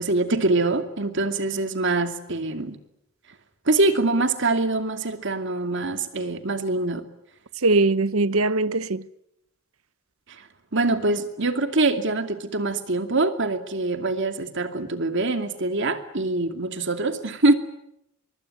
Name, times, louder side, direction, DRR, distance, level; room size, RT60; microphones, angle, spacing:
voice 1, 0.0-2.8 3.7-7.1 10.7-17.5, right 2 dB, 60° right, 2.5 m, -24 dB
voice 2, 7.6-9.0, right 3 dB, 85° right, 0.9 m, -21 dB
24.5 x 23.5 x 9.6 m
head